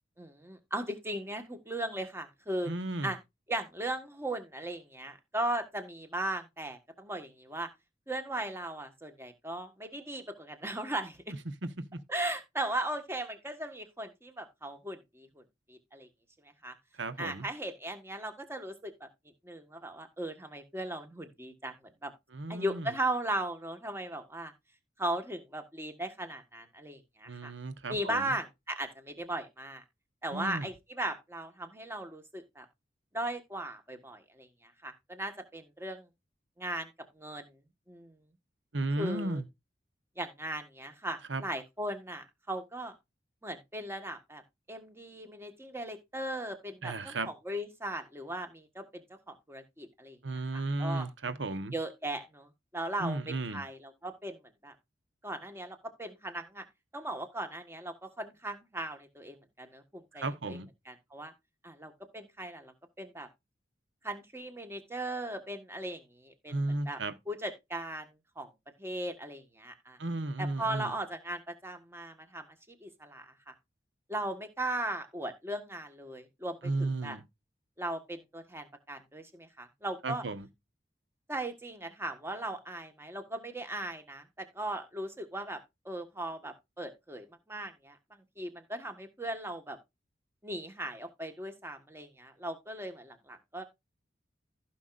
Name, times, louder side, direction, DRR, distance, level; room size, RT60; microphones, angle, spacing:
voice 1, 0.2-2.7 3.0-3.2 3.5-7.7 8.1-11.3 12.1-15.4 15.7-16.1 16.6-16.7 17.2-19.1 19.4-21.7 22.0-22.1 22.5-24.5 25.0-27.5 27.9-29.8 30.2-32.6 33.1-36.1 36.6-36.9 37.1-37.5 37.9-38.2 39.0-39.4 40.2-42.9 43.4-44.4 44.7-51.1 51.7-54.7 55.2-56.6 56.9-60.6 60.8-61.3 61.6-63.3 64.0-66.6 66.8-67.0 67.3-68.5 68.8-70.0 70.4-72.4 72.8-73.5 74.1-77.2 77.8-80.2 81.3-85.6 85.8-88.0 88.4-89.8 90.4-93.6, right 1 dB, 15° right, 1.5 m, -38 dB
voice 2, 2.7-3.1 11.6-12.0 17.0-17.5 22.3-22.9 27.3-28.3 30.3-30.7 38.7-39.4 41.3-41.4 46.8-47.3 50.2-51.7 53.0-53.6 60.2-60.7 66.5-67.1 70.0-70.9 76.6-77.2 80.0-80.5, right 2 dB, 80° right, 1.2 m, -34 dB
15.0 x 5.9 x 2.6 m
head